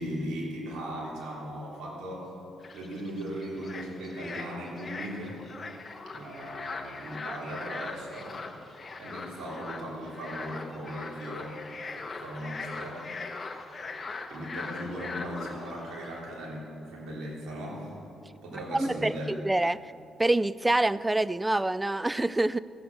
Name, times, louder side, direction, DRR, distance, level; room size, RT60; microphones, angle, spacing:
voice 1, 0.0-2.3 2.7-5.4 6.1-8.4 9.0-11.6 11.9-13.1 14.3-17.9 18.4-19.3, equal, 80° right, -4 dB, 3.2 m, -38 dB
sound 1, 2.6-16.2, left 4 dB, 35° left, 1.0 m, -41 dB
voice 2, 18.5-19.8 20.2-22.6, right 2 dB, 15° right, 18 dB, 0.3 m, -26 dB
15.0 x 7.9 x 6.6 m, 2.7 s
cardioid pair, 90°, 0 cm